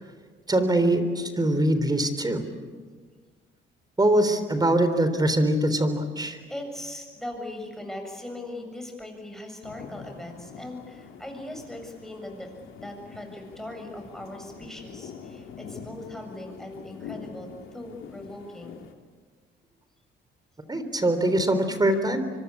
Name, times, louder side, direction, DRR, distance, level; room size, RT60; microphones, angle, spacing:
voice 1, 0.5-2.4 4.0-6.4 20.7-22.3, right 1 dB, 20° right, 10 dB, 3.6 m, -23 dB
voice 2, 6.5-12.5 12.8-18.8, left 1 dB, ahead, 3 dB, 7.6 m, -39 dB
sound 1, 9.6-18.9, left 6 dB, 85° left, 2.6 m, -44 dB
25.0 x 24.5 x 8.6 m, 1.5 s
cardioid pair, 90°, 20 cm